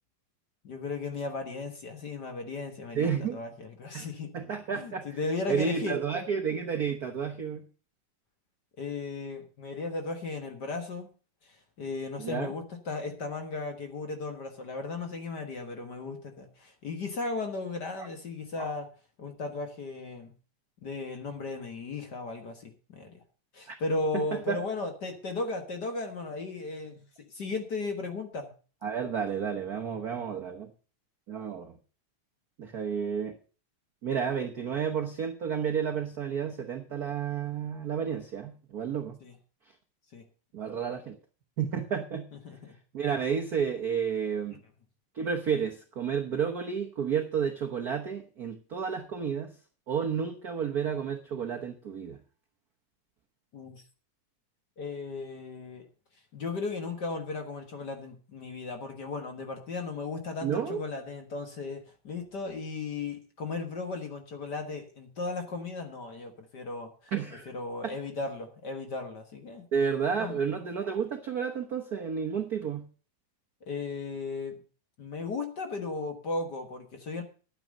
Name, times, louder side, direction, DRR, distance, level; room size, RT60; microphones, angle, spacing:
voice 1, 0.6-4.3 4.7-6.0 8.8-11.1 11.4-18.9 19.2-20.3 20.8-23.2 23.5-28.5 39.2-39.3 40.1-40.2 42.4-42.8 53.5-53.8 54.8-55.9 56.3-67.1 67.5-69.6 70.2-70.4 73.7-74.6 75.0-77.2, left 3 dB, 45° left, 6 dB, 1.6 m, -36 dB
voice 2, 2.9-3.4 3.9-4.1 4.3-5.1 5.5-7.6 12.2-12.5 18.0-18.1 18.6-18.7 23.7-23.8 24.1-24.6 28.8-30.7 31.3-31.7 32.6-33.4 34.0-39.2 40.5-41.2 41.6-42.3 42.9-44.6 45.1-49.5 49.9-52.2 60.4-60.8 67.1-67.5 67.8-68.0 69.7-72.8, right 7 dB, 80° right, 4 dB, 0.8 m, -31 dB
11.0 x 9.0 x 6.4 m, 0.38 s
omnidirectional pair, 3.4 m